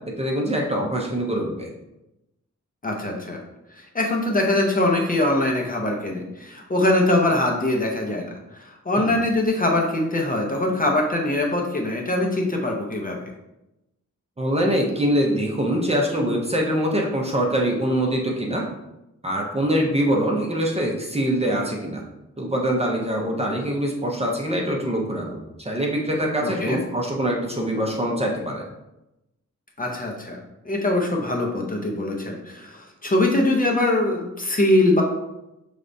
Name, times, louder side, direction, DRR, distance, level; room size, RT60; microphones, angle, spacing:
voice 1, 0.2-1.7 9.0-9.1 14.4-18.7 19.2-22.0 22.4-28.6, equal, 20° right, -1 dB, 0.6 m, -24 dB
voice 2, 2.8-3.4 3.7-13.3 26.4-26.8 29.8-30.4 30.6-35.0, left 1 dB, 30° left, 0 dB, 0.6 m, -22 dB
6.2 x 3.3 x 2.6 m, 0.92 s
wide cardioid pair, 170°, 29 cm